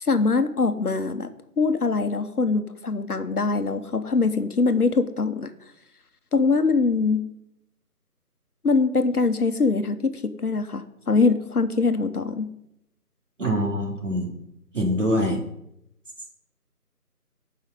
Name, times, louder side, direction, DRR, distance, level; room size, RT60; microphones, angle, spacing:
voice 1, 0.0-1.3 1.6-5.5 6.3-7.2 8.6-12.5, left 4 dB, 70° left, 9 dB, 1.2 m, -23 dB
voice 2, 13.4-14.3 14.7-15.4, equal, 50° right, 1 dB, 2.8 m, -24 dB
15.0 x 5.7 x 5.2 m, 0.80 s
figure-of-eight pair, 175°, 47 cm